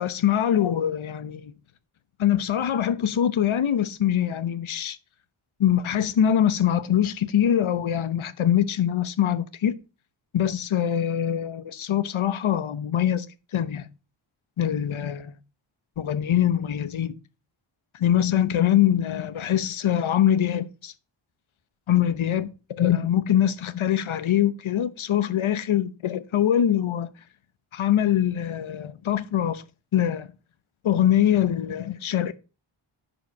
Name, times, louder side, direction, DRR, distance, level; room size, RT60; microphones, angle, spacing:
voice 1, 0.0-1.5 2.2-5.0 5.6-9.8 10.3-13.3 13.5-13.9 14.6-15.4 16.0-17.1 17.9-20.9 21.9-27.1 27.7-29.6 29.9-30.3 30.8-32.3, left 10 dB, 70° left, 0.9 m, -23 dB
10.5 x 5.1 x 5.3 m
wide cardioid pair, 120°, 50 cm